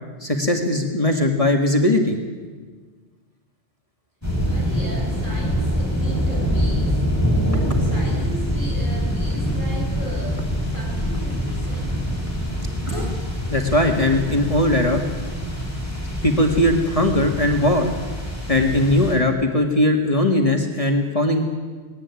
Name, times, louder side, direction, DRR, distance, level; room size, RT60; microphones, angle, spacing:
voice 1, 0.2-2.2 13.5-15.0 16.2-17.9 18.5-21.4, left 1 dB, 30° left, 2 dB, 2.0 m, -19 dB
sound 1, 4.2-19.1, equal, 15° left, 5.9 m, -24 dB
voice 2, 4.5-7.1 7.5-12.1, equal, 50° right, -2 dB, 6.7 m, -37 dB
sound 2, 9.3-10.3 10.6-15.5, left 1 dB, 30° right, 6.9 m, -40 dB
19.5 x 17.5 x 9.8 m, 1.4 s
omnidirectional pair, 1.1 m